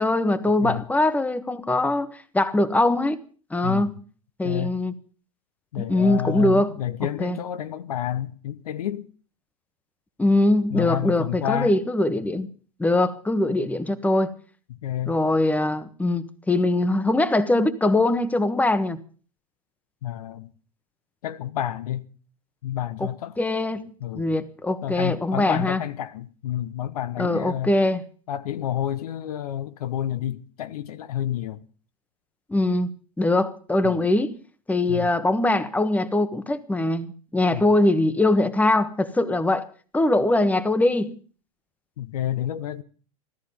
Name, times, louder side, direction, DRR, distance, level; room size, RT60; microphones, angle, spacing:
voice 1, 0.0-3.2 3.5-3.9 4.4-4.9 5.8-6.7 7.2-7.4 10.2-12.5 12.8-14.3 15.1-19.0 23.0-23.1 23.4-25.8 27.2-28.0 32.5-32.9 33.2-34.3 34.7-39.7 39.9-41.2, left 2 dB, 5° left, 1.4 m, -22 dB
voice 2, 3.6-4.0 4.4-4.8 5.7-9.1 10.7-11.7 14.7-15.2 20.0-20.5 21.2-22.1 22.6-23.3 24.0-24.3 24.8-27.7 28.3-31.6 33.8-34.1 34.9-35.1 37.5-37.7 42.0-42.8, left 11 dB, 70° left, 1.1 m, -30 dB
16.0 x 14.0 x 5.3 m
hypercardioid pair, 90°, 20 cm